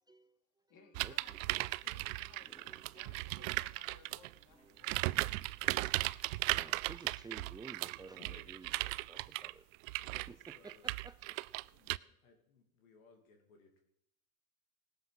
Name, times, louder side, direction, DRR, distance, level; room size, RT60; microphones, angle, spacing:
voice 1, 0.1-0.4 1.0-1.4 2.7-3.1 3.4-3.6 3.9-4.0 4.6-4.9 5.6-9.6 10.3-11.4, right 4 dB, 10° right, 11 dB, 0.4 m, -54 dB
voice 2, 0.7-5.3, left 5 dB, 50° left, 4 dB, 2.9 m, -63 dB
sound 1, 0.9-4.3 4.8-12.0, right 21 dB, 75° right, 0.5 m, -37 dB
sound 2, 1.8-3.3 4.3-6.1, equal, 15° left, 4.7 m, -66 dB
voice 3, 8.2-8.7 10.0-10.9 11.7-13.8, left 4 dB, 90° left, 3 dB, 2.8 m, -63 dB
18.5 x 7.7 x 6.0 m, 0.74 s
supercardioid pair, 95°, 40 cm